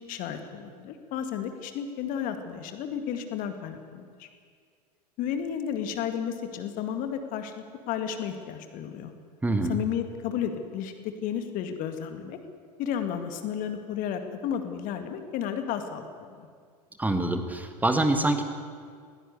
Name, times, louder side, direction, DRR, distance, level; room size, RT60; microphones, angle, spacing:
voice 1, 0.0-4.3 5.2-7.5 7.9-9.1 9.7-12.4 12.8-16.5, left 8 dB, 40° left, 7 dB, 2.1 m, -32 dB
voice 2, 9.4-9.8 17.0-18.4, right 2 dB, 10° right, 6 dB, 1.6 m, -25 dB
21.0 x 16.5 x 8.2 m, 2.1 s
figure-of-eight pair, 90°, 21 cm